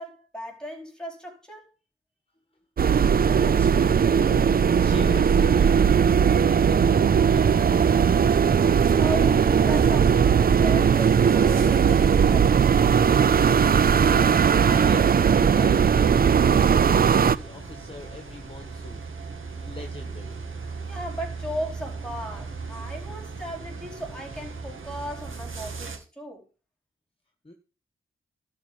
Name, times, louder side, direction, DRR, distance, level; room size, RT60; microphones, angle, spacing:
voice 1, 0.0-1.7 9.0-12.8 20.9-26.4, right 1 dB, 5° left, 4.5 m, -36 dB
sound 1, 2.8-17.4, right 7 dB, 45° right, 0.5 m, -19 dB
voice 2, 3.4-8.4 13.3-19.1 19.5-20.5 27.4-27.5, left 2 dB, 25° left, 1.5 m, -41 dB
sound 2, 7.3-26.0, right 4 dB, 70° right, 2.4 m, -36 dB
12.0 x 4.9 x 6.8 m
cardioid pair, 70°, 21 cm